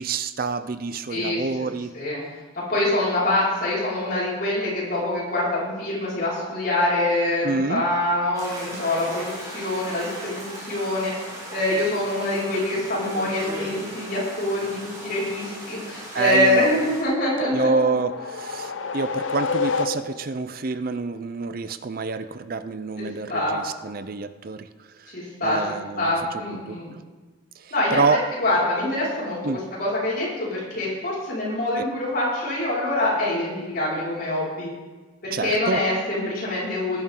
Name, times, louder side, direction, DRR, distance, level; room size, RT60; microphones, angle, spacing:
voice 1, 0.0-2.0 7.4-7.8 16.1-16.7 17.5-24.7 25.0-25.1 25.4-26.1 26.7-26.8 27.6-28.2 29.4-29.6 35.3-35.8, right 4 dB, 50° right, 11 dB, 0.5 m, -27 dB
voice 2, 1.1-1.5 1.9-2.2 2.7-17.7 23.0-23.6 25.1-26.9 27.7-28.0 28.4-34.7 35.2-37.0, left 1 dB, 50° left, -7 dB, 5.5 m, -25 dB
sound 1, 8.3-17.0, right 1 dB, 20° right, 5.1 m, -37 dB
sound 2, 17.2-20.4, left 5 dB, 90° left, 0.8 m, -29 dB
18.5 x 11.0 x 3.8 m, 1.3 s
head